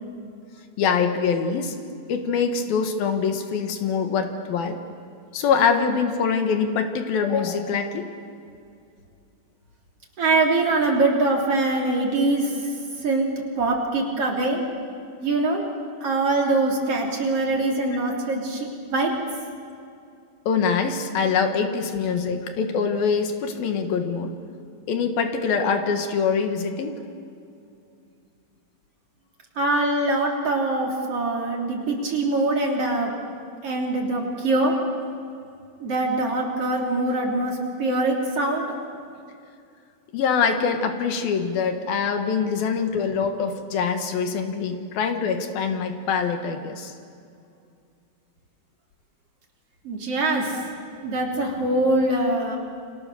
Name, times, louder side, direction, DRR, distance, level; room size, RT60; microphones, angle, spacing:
voice 1, 0.8-1.7 2.1-4.8 5.3-8.1 20.5-24.3 24.9-26.9 40.1-46.9 50.5-50.6, left 6 dB, 70° left, 6 dB, 3.2 m, -24 dB
voice 2, 10.2-12.5 13.0-13.3 13.6-14.6 15.2-15.6 16.0-19.1 29.6-33.1 33.6-34.8 35.8-38.7 49.8-50.6 51.0-52.6, right 2 dB, 40° right, 0 dB, 3.8 m, -23 dB
29.5 x 25.5 x 6.9 m, 2.4 s
omnidirectional pair, 4.6 m